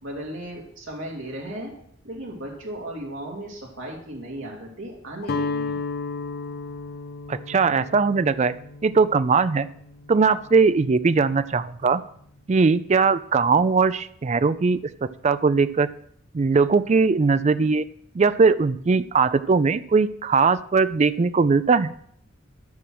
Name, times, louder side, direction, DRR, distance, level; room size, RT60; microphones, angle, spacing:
voice 1, 0.0-1.7 2.0-5.8, right 1 dB, 70° right, -2 dB, 2.4 m, -36 dB
Guitar, 5.2-11.3, left 4 dB, 50° left, 0.6 m, -34 dB
voice 2, 7.3-8.5 8.8-9.7 10.1-12.0 12.5-15.9 16.3-17.8 18.1-21.9, right 4 dB, 35° right, 14 dB, 0.4 m, -20 dB
13.0 x 6.2 x 6.1 m, 0.68 s
head